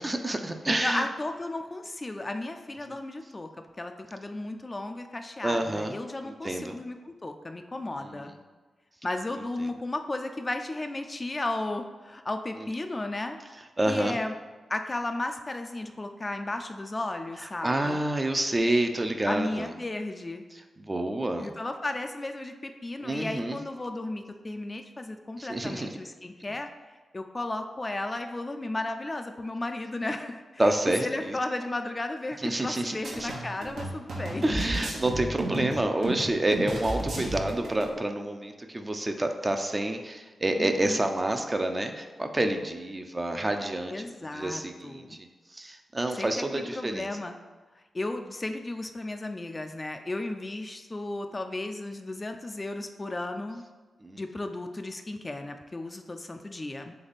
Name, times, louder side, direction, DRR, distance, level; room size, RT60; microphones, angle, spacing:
voice 1, 0.0-1.1 5.4-5.9 6.2-6.7 8.0-8.3 12.6-12.7 13.8-14.1 17.4-19.7 20.8-21.5 23.0-23.6 25.4-25.9 30.6-31.4 32.4-33.3 34.4-45.2 45.5-47.1 54.0-54.2, right 1 dB, 25° right, 5 dB, 0.5 m, -28 dB
voice 2, 0.7-3.5 3.8-8.3 9.0-13.4 13.9-14.3 14.7-18.0 19.3-20.4 21.4-26.7 27.1-30.7 31.0-34.4 40.6-41.0 43.9-45.2 46.2-47.3 47.9-53.6 54.2-56.9, left 2 dB, 30° left, 6 dB, 0.3 m, -34 dB
sound 1, 33.0-37.9, right 1 dB, 80° right, 0.9 m, -33 dB
3.4 x 3.4 x 4.0 m, 1.3 s
cardioid pair, 50°, 0 cm